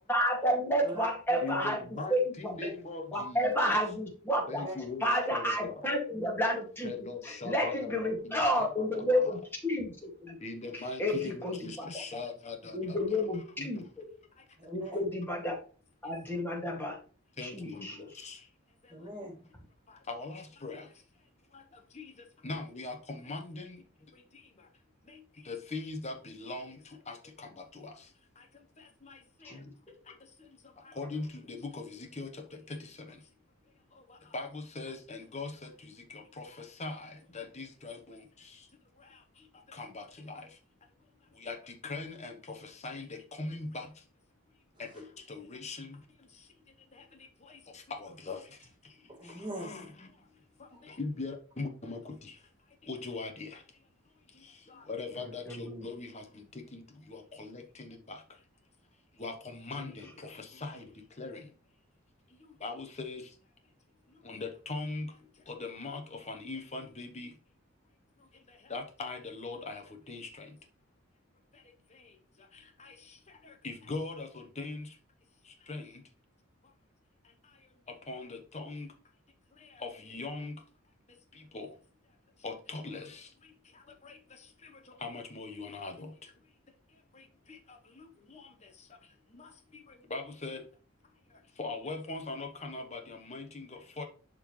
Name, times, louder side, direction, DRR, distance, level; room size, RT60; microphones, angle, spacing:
voice 1, 0.1-1.8 2.1-2.7 3.1-4.7 5.0-6.9 7.4-9.4 9.6-10.4 11.0-11.9 12.7-14.1 14.7-15.6 16.0-17.0 17.4-18.0 29.4-29.7 55.5-55.8, equal, 10° left, 2.0 m, -30 dB
voice 2, 0.8-1.7 2.0-2.1 4.6-4.7 6.1-6.3 12.8-13.0 14.6-15.1 18.9-19.5 49.1-49.9 50.7-50.8, right 1 dB, 20° right, 1.9 m, -42 dB
voice 3, 1.4-3.7 4.5-5.7 6.8-9.3 10.4-12.8 13.2-13.7 17.4-17.9 18.2-18.4 20.1-20.8 22.0-22.1 22.4-23.8 25.5-26.7 27.1-27.5 27.8-27.9 31.0-31.9 32.2-32.3 34.3-35.7 36.4-36.5 36.8-38.2 39.7-40.4 41.4-42.3 42.8-43.9 44.8-45.9 47.9-48.4 49.6-49.9 50.9-52.0 52.9-53.5 54.9-56.2 56.7-56.8 57.1-58.2 59.2-60.8 61.2-61.4 62.6-63.2 64.2-65.1 65.5-67.3 68.7-70.5 72.8-72.9 73.6-74.9 75.7-75.9 78.1-78.9 79.8-80.5 81.5-81.7 82.4-83.2 84.0-84.1 85.0-86.1 89.3-89.5 90.1-90.6 91.6-93.7 94.0-94.1, left 3 dB, 30° left, 1.0 m, -40 dB
11.0 x 3.8 x 3.1 m
head